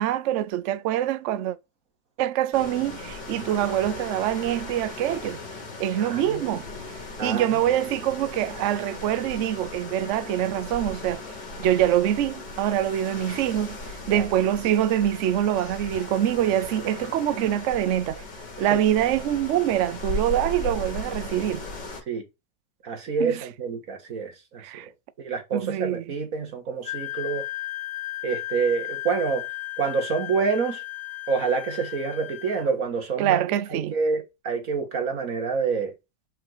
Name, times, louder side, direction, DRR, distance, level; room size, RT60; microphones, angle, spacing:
voice 1, 0.0-1.6 2.2-5.4 5.8-6.6 7.2-11.2 11.6-18.2 18.6-21.6 23.2-23.4 24.6-24.9 25.5-26.0 33.2-33.9, right 11 dB, 75° right, 0.6 m, -25 dB
sound 1, 2.5-22.0, left 2 dB, 80° left, 2.8 m, -37 dB
voice 2, 6.0-6.6 7.2-7.6 14.1-14.3 22.1-22.2 22.8-24.6 25.2-27.4 28.2-29.4 29.8-30.8 31.3-33.4 33.7-35.9, right 5 dB, 55° right, 2.0 m, -27 dB
Wind instrument woodwind instrument, 26.8-32.7, left 17 dB, 60° left, 0.6 m, -35 dB
5.7 x 3.9 x 4.7 m
omnidirectional pair, 1.8 m